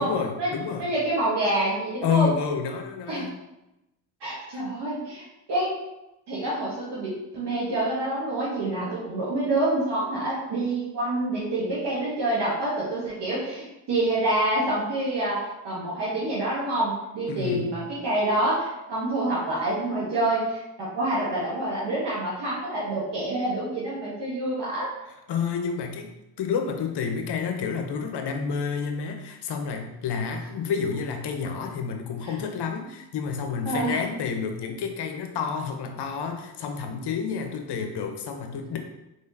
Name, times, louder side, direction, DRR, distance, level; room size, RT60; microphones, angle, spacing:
voice 1, 0.0-0.9 2.0-3.4 4.5-4.6 17.3-17.7 25.3-26.1 26.4-38.8, left 6 dB, 60° left, 4 dB, 0.7 m, -29 dB
voice 2, 0.8-2.3 3.1-3.2 4.2-5.2 5.5-5.7 6.3-24.9 32.2-32.3 33.6-34.0, right 1 dB, 60° right, -7 dB, 1.3 m, -27 dB
3.7 x 3.4 x 2.7 m, 0.93 s
hypercardioid pair, 45°, 46 cm